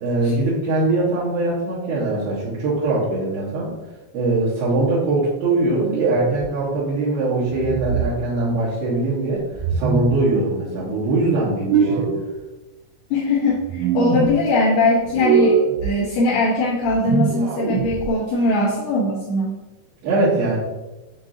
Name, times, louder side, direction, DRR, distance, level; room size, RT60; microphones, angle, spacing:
voice 1, 0.0-3.7 4.1-9.4 9.7-12.1 20.0-20.6, right 2 dB, 70° right, -11 dB, 2.7 m, -21 dB
sound 1, 5.8-6.4 7.5-8.1 9.5-10.1 11.5-12.2 13.5-14.3 15.0-15.9 16.8-18.1, right 5 dB, 85° right, 3.0 m, -22 dB
voice 2, 13.1-19.6, left 2 dB, 80° left, -7 dB, 2.6 m, -21 dB
7.3 x 2.7 x 2.6 m, 1.1 s
omnidirectional pair, 5.2 m